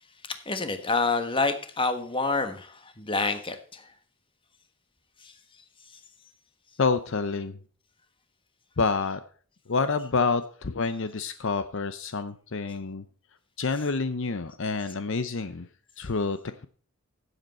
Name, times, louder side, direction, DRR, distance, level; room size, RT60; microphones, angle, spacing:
voice 1, 0.2-3.9 5.2-5.3 5.9-6.0, left 3 dB, 25° left, 8 dB, 1.4 m, -28 dB
voice 2, 6.8-7.6 8.8-9.2 9.7-13.0 13.6-15.7 16.0-16.4, left 4 dB, 60° left, 11 dB, 0.7 m, -28 dB
15.5 x 8.0 x 4.3 m, 0.44 s
head